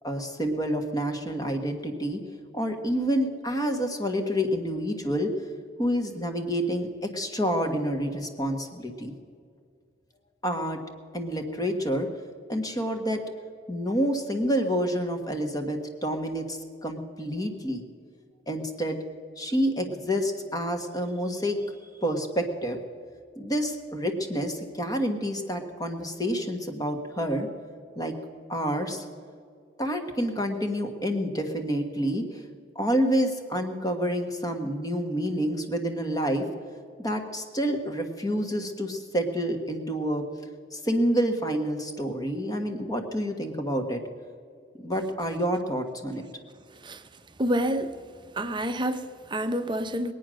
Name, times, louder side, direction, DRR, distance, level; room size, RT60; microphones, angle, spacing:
voice 1, 0.0-2.2 2.5-5.3 5.8-9.1 10.4-10.8 11.1-12.1 12.5-13.2 13.7-17.8 18.5-19.0 19.4-22.8 23.4-27.5 28.0-28.1 28.5-29.0 29.8-32.4 32.7-36.4 37.0-40.2 40.7-44.0 44.8-46.2, equal, 20° left, 5 dB, 1.4 m, -28 dB
voice 2, 47.4-47.9 48.4-50.1, equal, 25° right, 8 dB, 0.8 m, -28 dB
21.5 x 9.1 x 6.3 m, 2.1 s
head